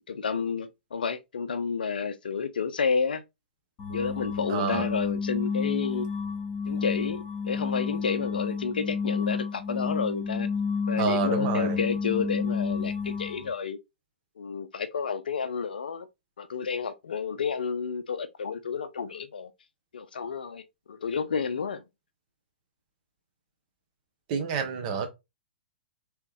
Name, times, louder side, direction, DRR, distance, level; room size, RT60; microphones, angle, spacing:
voice 1, 0.1-3.2 3.9-6.1 6.7-10.5 10.9-13.8 14.4-16.1 16.4-19.5 19.9-21.8, left 6 dB, 65° left, 0.4 m, -31 dB
sound 1, 3.8-13.5, left 5 dB, 30° left, 1.1 m, -30 dB
voice 2, 4.5-4.9 11.0-11.8 24.3-25.1, right 6 dB, 40° right, 0.9 m, -28 dB
3.2 x 3.0 x 3.2 m
figure-of-eight pair, 110°, 5 cm